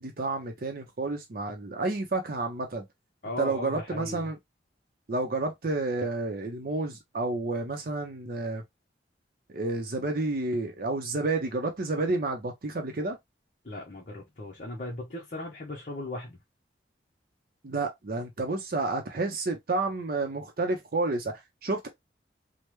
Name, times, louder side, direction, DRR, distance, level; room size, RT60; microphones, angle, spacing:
voice 1, 0.0-2.8 3.4-4.4 5.1-8.6 9.5-13.2 17.6-21.3 21.6-21.9, right 2 dB, 50° right, 0.6 m, -30 dB
voice 2, 3.2-4.3 13.6-16.4, left 1 dB, 45° left, 0.8 m, -37 dB
3.2 x 2.1 x 3.0 m
head